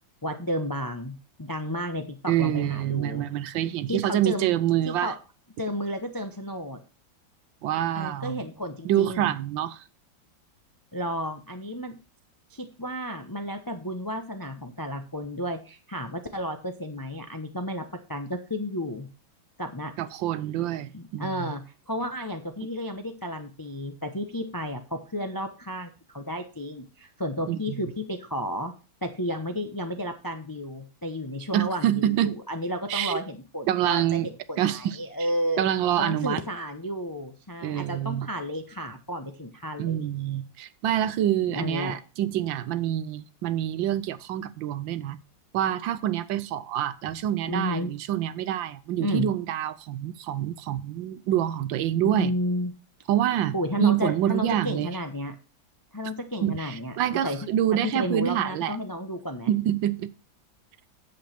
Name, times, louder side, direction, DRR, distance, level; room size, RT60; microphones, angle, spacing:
voice 1, 0.2-3.3 3.9-4.5 4.8-5.1 5.6-6.8 7.9-9.3 10.9-11.9 12.5-17.8 18.1-19.1 19.6-19.9 20.9-28.7 29.0-35.7 36.0-40.4 41.5-42.0 47.5-47.9 49.0-49.3 52.0-52.7 53.3-55.4 55.9-57.4 57.8-59.5, equal, 35° left, 0.3 m, -32 dB
voice 2, 2.3-5.1 7.6-8.4 8.8-9.8 20.0-21.5 27.5-27.8 31.5-32.4 32.9-33.2 33.7-34.3 34.6-35.0 35.6-36.4 37.6-38.3 39.8-45.2 45.5-52.3 53.1-54.9 56.4-58.8 59.5-60.1, right 11 dB, 80° right, 1.4 m, -26 dB
8.3 x 7.9 x 4.3 m
omnidirectional pair, 2.1 m